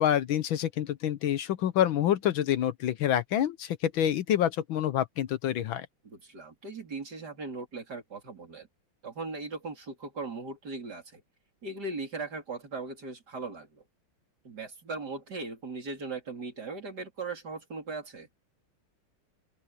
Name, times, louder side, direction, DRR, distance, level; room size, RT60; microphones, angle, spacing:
voice 1, 0.0-5.9, left 11 dB, 70° left, 1.6 m, -27 dB
voice 2, 6.0-8.7 9.0-11.2 11.6-13.8 14.4-18.3, right 3 dB, 50° right, 4.3 m, -38 dB
open air
omnidirectional pair, 2.3 m